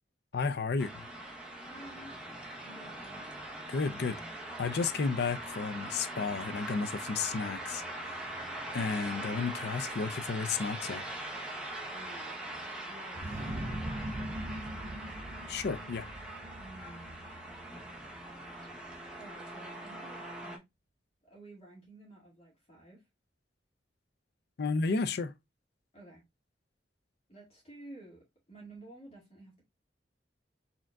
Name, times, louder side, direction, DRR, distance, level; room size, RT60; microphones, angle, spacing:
voice 1, 0.3-0.9 3.7-4.2 4.6-8.3 8.7-11.1 15.5-16.1 24.6-25.3, left 4 dB, 65° left, 0.5 m, -32 dB
sound 1, 0.8-20.6, right 1 dB, 5° right, 0.9 m, -42 dB
voice 2, 1.7-2.2 2.6-3.3 11.9-15.2 16.6-17.3 19.2-20.6 21.2-23.0 25.9-26.2 27.3-29.6, right 2 dB, 35° left, 2.0 m, -53 dB
sound 2, 13.1-18.7, right 1 dB, 45° right, 0.5 m, -41 dB
4.4 x 3.6 x 2.3 m
head